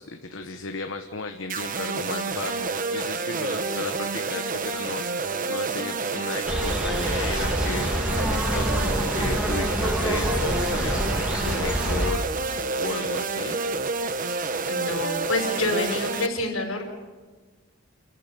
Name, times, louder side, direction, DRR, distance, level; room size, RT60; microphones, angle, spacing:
voice 1, 0.0-12.3 12.8-13.6, left 3 dB, 65° left, 5 dB, 1.2 m, -34 dB
sound 1, 1.5-16.3, right 4 dB, 40° right, 1.0 m, -29 dB
sound 2, 6.5-12.1, equal, 5° right, 2.5 m, -27 dB
voice 2, 14.7-16.8, left 2 dB, 85° left, 2 dB, 5.7 m, -27 dB
28.5 x 14.5 x 6.9 m, 1.4 s
head